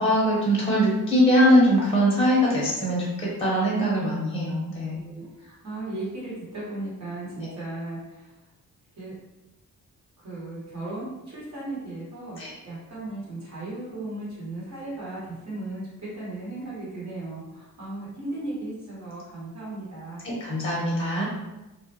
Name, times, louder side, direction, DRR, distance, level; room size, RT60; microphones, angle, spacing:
voice 1, 0.0-5.0 7.4-7.5 12.4-12.5 20.2-21.3, equal, 15° left, -5 dB, 0.7 m, -22 dB
voice 2, 4.8-8.3 8.9-9.1 10.2-20.2, right 2 dB, 50° right, -7 dB, 1.3 m, -36 dB
2.4 x 2.1 x 2.8 m, 1.0 s
cardioid pair, 115°, 36 cm